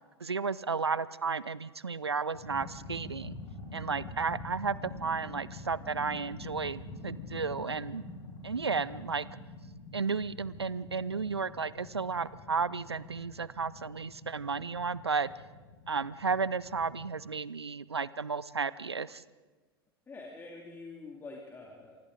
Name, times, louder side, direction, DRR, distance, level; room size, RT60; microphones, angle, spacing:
voice 1, 0.2-3.4 3.7-8.0 8.4-9.3 9.9-15.3 15.9-19.2, right 5 dB, 85° right, 19 dB, 0.5 m, -33 dB
sound 1, 2.3-17.2, left 3 dB, 65° left, 5.5 m, -45 dB
voice 2, 20.1-22.0, left 3 dB, 15° left, 0 dB, 2.8 m, -46 dB
28.5 x 25.0 x 3.9 m, 1.3 s
figure-of-eight pair, 90°, 13 cm